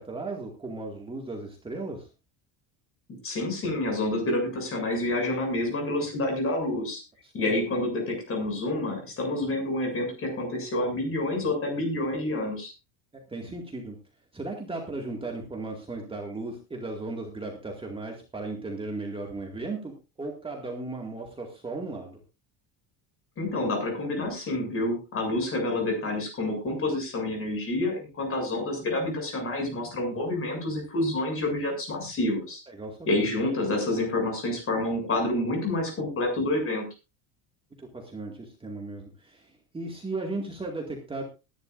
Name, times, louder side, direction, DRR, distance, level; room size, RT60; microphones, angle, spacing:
voice 1, 0.0-2.1 7.2-7.5 13.3-14.0 14.3-22.2 32.7-33.3 37.8-41.2, right 2 dB, 10° right, 1 dB, 2.1 m, -36 dB
voice 2, 3.2-7.0 7.3-12.7 23.4-32.6 33.1-36.8, left 2 dB, 30° left, 3 dB, 7.6 m, -28 dB
20.5 x 11.0 x 2.6 m, 0.28 s
cardioid pair, 155°, 44 cm